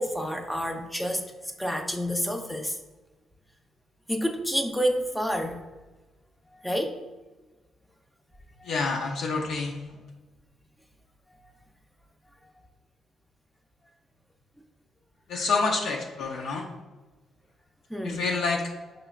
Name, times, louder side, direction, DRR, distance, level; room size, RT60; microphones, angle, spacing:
voice 1, 0.0-2.8 4.1-5.6 6.5-7.0 8.6-8.8 17.9-18.3, equal, 5° left, 4 dB, 0.4 m, -29 dB
voice 2, 8.7-9.8 15.3-16.7 18.0-18.6, left 4 dB, 75° left, 0 dB, 0.4 m, -27 dB
4.8 x 3.0 x 2.4 m, 1.2 s
cardioid pair, 90°, 0 cm